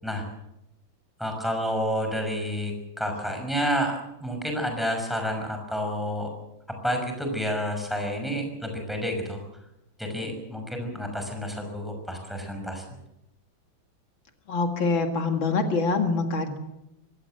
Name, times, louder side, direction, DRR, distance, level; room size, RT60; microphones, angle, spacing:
voice 1, 1.2-6.3 6.8-9.4 10.0-12.8, equal, ahead, 3 dB, 5.8 m, -29 dB
voice 2, 14.5-16.6, left 3 dB, 75° left, 5 dB, 2.8 m, -25 dB
25.0 x 17.0 x 7.7 m, 0.87 s
omnidirectional pair, 2.1 m